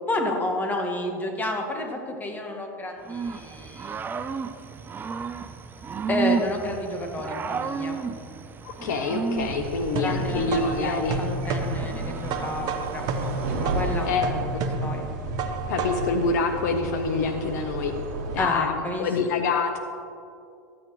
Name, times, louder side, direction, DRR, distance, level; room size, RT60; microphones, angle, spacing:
voice 1, 0.1-4.2 6.1-8.0 10.0-13.3 13.6-14.4 14.8-15.1 18.4-19.1, left 1 dB, 15° left, 2 dB, 1.6 m, -30 dB
Growling / Cricket, 3.0-14.0, right 5 dB, 20° right, 0.4 m, -33 dB
voice 2, 8.6-11.2 14.0-14.2 14.5-14.6 15.7-17.9 18.3-19.8, left 4 dB, 70° left, 6 dB, 0.8 m, -26 dB
sound 1, 9.4-16.2, right 3 dB, 45° right, 0.8 m, -31 dB
sound 2, 9.4-18.4, right 2 dB, 60° right, 1.4 m, -33 dB
13.5 x 8.6 x 3.1 m, 2.5 s
hypercardioid pair, 95°, 10 cm